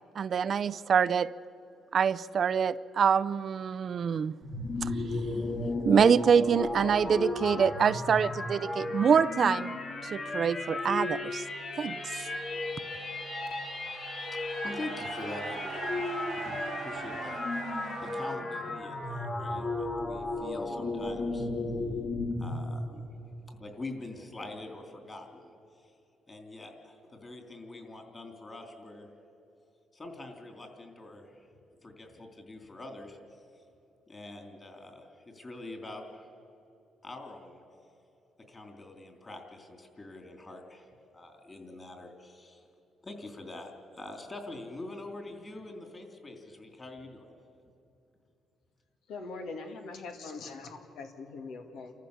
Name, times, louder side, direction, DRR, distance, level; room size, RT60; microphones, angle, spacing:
voice 1, 0.2-1.3 1.9-4.3 5.8-9.7 10.1-11.4 11.8-12.2, right 7 dB, 55° right, 16 dB, 0.4 m, -25 dB
sound 1, 4.4-22.6, left 2 dB, 50° left, 4.1 m, -34 dB
sound 2, 10.6-18.4, right 9 dB, 75° right, 0.9 m, -44 dB
voice 2, 14.0-14.4 14.6-17.7 18.0-21.5 22.4-23.2 23.5-25.5 26.3-29.1 29.9-31.4 31.8-33.2 34.1-36.3 37.0-37.6 38.5-40.9 41.1-42.6 43.0-47.3, left 2 dB, 25° left, 3 dB, 3.7 m, -44 dB
voice 3, 49.1-51.9, left 3 dB, 80° left, 4 dB, 2.3 m, -42 dB
29.0 x 14.5 x 7.0 m, 2.7 s
cardioid pair, 90°, 0 cm